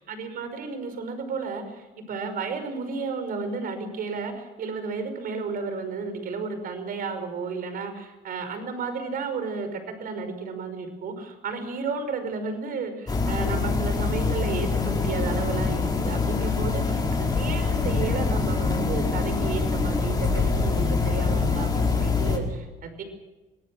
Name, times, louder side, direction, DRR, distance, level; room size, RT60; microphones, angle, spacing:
voice 1, 0.1-23.0, right 4 dB, 60° right, 8 dB, 5.5 m, -32 dB
sound 1, 13.1-22.4, left 4 dB, 25° left, 4.9 m, -25 dB
24.0 x 18.5 x 7.5 m, 1.1 s
cardioid pair, 110°, 17 cm